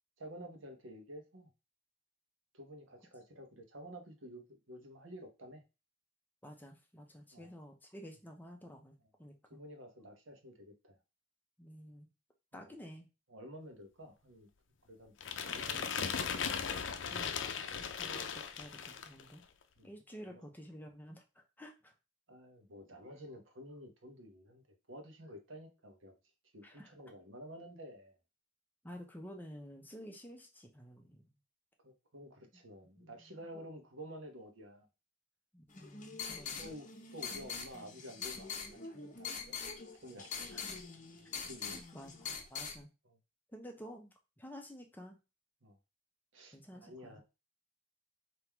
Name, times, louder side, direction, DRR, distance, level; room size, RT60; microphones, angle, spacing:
voice 1, 0.2-1.5 2.5-5.6 7.3-7.5 9.5-11.0 12.5-12.6 13.3-14.5 14.9-15.1 15.4-16.4 19.8-19.9 20.3-20.4 22.3-26.1 26.5-28.1 31.8-34.9 36.6-39.5 40.0-40.3 41.4-41.8 43.1-43.2 45.6-45.8 46.3-47.2, equal, 70° right, 4 dB, 1.2 m, -51 dB
voice 2, 6.4-9.6 11.6-12.1 12.5-13.1 17.1-19.4 19.8-21.9 26.6-26.9 28.8-31.2 33.0-33.7 35.5-36.8 40.5-40.6 41.7-42.9 43.5-45.2 46.5-47.2, equal, 10° left, 3 dB, 0.8 m, -51 dB
sound 1, 15.2-19.2, left 7 dB, 65° left, 0.5 m, -38 dB
sound 2, 35.7-42.8, left 6 dB, 40° left, 0.8 m, -44 dB
3.8 x 3.0 x 4.5 m, 0.28 s
head